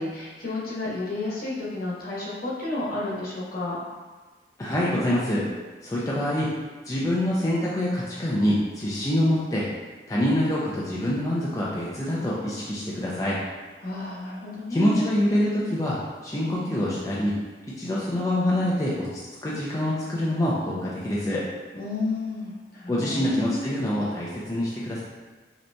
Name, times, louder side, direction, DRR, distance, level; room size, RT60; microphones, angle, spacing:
voice 1, 0.0-3.8 13.8-15.1 21.7-23.6, left 2 dB, 55° left, -6 dB, 1.1 m, -31 dB
voice 2, 4.6-5.5 5.8-6.5 6.9-9.7 10.1-13.4 14.7-16.0 16.2-17.4 17.7-21.4 22.9-25.0, left 1 dB, 20° left, -7 dB, 0.4 m, -25 dB
5.1 x 2.9 x 2.2 m, 1.4 s
head